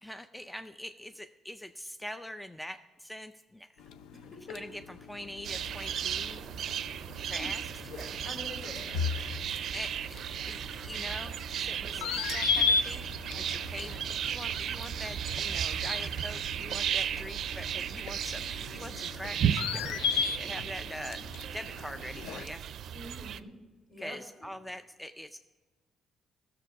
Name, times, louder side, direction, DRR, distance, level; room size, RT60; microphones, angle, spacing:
voice 1, 0.0-3.8 4.5-6.4 7.2-7.6 9.7-14.0 14.2-21.3 21.5-22.6 24.0-25.4, equal, 5° left, 10 dB, 0.4 m, -43 dB
sound 1, 3.8-22.5, left 5 dB, 85° left, 0.5 m, -37 dB
voice 2, 4.1-4.6 7.3-7.5 7.8-9.1 22.9-23.5 23.9-24.2, left 1 dB, 50° left, 2 dB, 4.3 m, -45 dB
sound 2, 5.4-23.4, right 9 dB, 70° right, 0.4 m, -35 dB
15.5 x 6.9 x 4.9 m, 1.4 s
cardioid pair, 90°, 0 cm